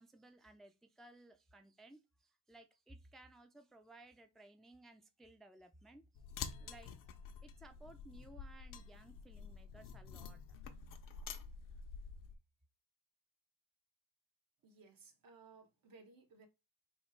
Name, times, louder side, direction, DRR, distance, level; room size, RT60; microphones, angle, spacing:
voice 1, 0.0-6.0 6.5-10.4, right 2 dB, ahead, 0.4 m, -60 dB
sound 1, 6.2-12.3, left 6 dB, 65° left, 0.6 m, -49 dB
voice 2, 14.6-16.5, right 4 dB, 70° right, 1.1 m, -60 dB
3.1 x 2.4 x 4.3 m
cardioid pair, 105°, 35 cm